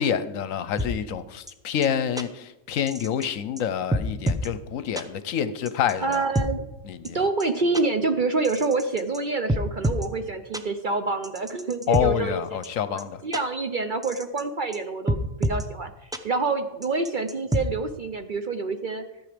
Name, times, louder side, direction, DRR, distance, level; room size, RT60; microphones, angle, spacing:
voice 1, 0.0-6.2 6.9-7.2 11.9-13.2, left 8 dB, 75° left, 13 dB, 1.1 m, -27 dB
sound 1, 0.8-0.9 1.5-1.6 1.8-1.9 2.2-2.3 2.9-3.3 3.6-3.7 3.9-4.5 4.9-5.0 5.6-6.5 7.0-7.1 7.4-7.5 7.7-7.8 8.4-9.2 9.5-10.1 10.5-10.6 11.2-12.0 12.6-12.7 13.0-13.1 13.3-13.4 14.0-14.4 14.7-14.8 15.1-15.6 16.1-16.2 16.8-17.6, equal, 5° right, 0.3 m, -27 dB
voice 2, 6.0-6.7 7.1-12.4 12.9-15.9 16.2-19.0, right 3 dB, 50° right, 8 dB, 0.7 m, -27 dB
14.5 x 8.9 x 5.1 m, 0.95 s
omnidirectional pair, 1.4 m